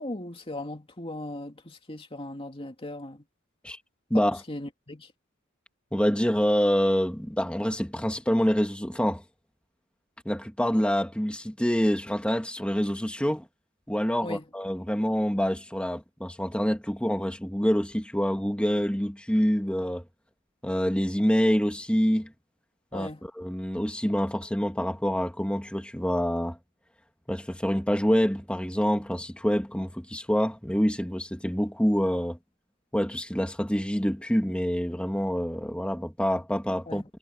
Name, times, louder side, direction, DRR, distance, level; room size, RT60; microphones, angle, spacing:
voice 1, 0.0-3.2 4.1-4.2 4.5-5.1 14.2-14.4 22.9-23.2 36.9-37.0, left 1 dB, 25° left, 2.5 m, -38 dB
voice 2, 5.9-9.2 10.2-13.5 13.9-20.0 20.6-22.3 22.9-23.1 23.4-26.6 27.3-32.4 32.9-37.0, equal, 5° left, 2.5 m, -26 dB
head